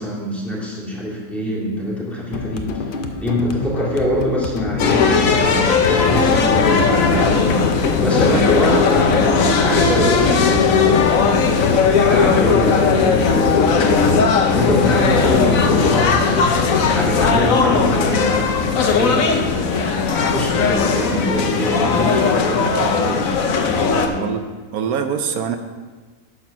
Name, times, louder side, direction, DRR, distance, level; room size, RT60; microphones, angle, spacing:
voice 1, 0.0-11.0 11.9-19.6 20.1-23.3 23.6-24.3, left 1 dB, ahead, -6 dB, 2.4 m, -24 dB
sound 1, 2.3-11.0, left 3 dB, 50° left, 0.7 m, -28 dB
sound 2, 4.8-24.1, left 5 dB, 70° left, 1.2 m, -17 dB
voice 2, 24.7-25.6, right 7 dB, 90° right, 7 dB, 1.2 m, -23 dB
11.5 x 4.3 x 5.9 m, 1.4 s
omnidirectional pair, 1.5 m